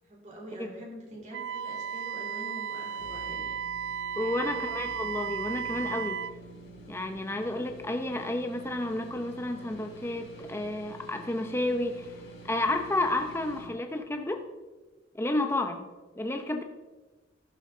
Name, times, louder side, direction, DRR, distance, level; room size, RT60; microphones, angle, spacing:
voice 1, 0.0-3.6 4.2-4.6, right 1 dB, 40° right, -1 dB, 3.7 m, -45 dB
Wind instrument woodwind instrument, 1.3-6.4, right 7 dB, 60° right, 0.3 m, -35 dB
sound 1, 3.0-13.7, right 2 dB, 75° left, 3.6 m, -48 dB
voice 2, 4.2-6.2 6.9-12.1 12.5-14.4 15.1-15.9 16.2-16.6, left 2 dB, 15° left, 5 dB, 0.7 m, -31 dB
14.0 x 12.0 x 3.9 m, 1.2 s
head